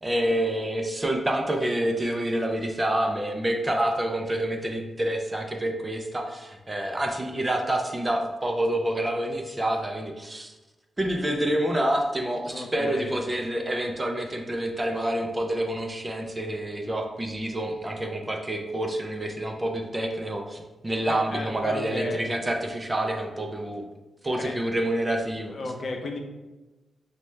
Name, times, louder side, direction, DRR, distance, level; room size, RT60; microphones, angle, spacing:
voice 1, 0.0-10.5 11.0-23.8 24.2-25.5, right 1 dB, 15° right, 2 dB, 0.3 m, -27 dB
voice 2, 12.5-13.1 21.1-22.3 24.4-24.5 25.5-26.2, left 3 dB, 45° left, 2 dB, 0.5 m, -34 dB
5.6 x 2.1 x 3.1 m, 1.1 s
wide cardioid pair, 175°, 0 cm